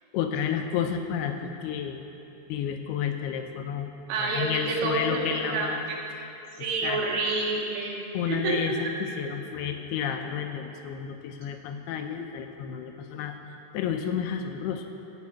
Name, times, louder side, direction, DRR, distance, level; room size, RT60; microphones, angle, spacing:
voice 1, 0.1-2.0 2.5-6.3 6.6-7.0 8.1-13.4 13.7-14.9, left 8 dB, 80° left, 5 dB, 2.5 m, -31 dB
voice 2, 4.1-6.1 6.6-8.8 9.2-9.3, right 3 dB, 90° right, -2 dB, 3.9 m, -29 dB
15.5 x 6.6 x 8.5 m, 2.9 s
omnidirectional pair, 4.9 m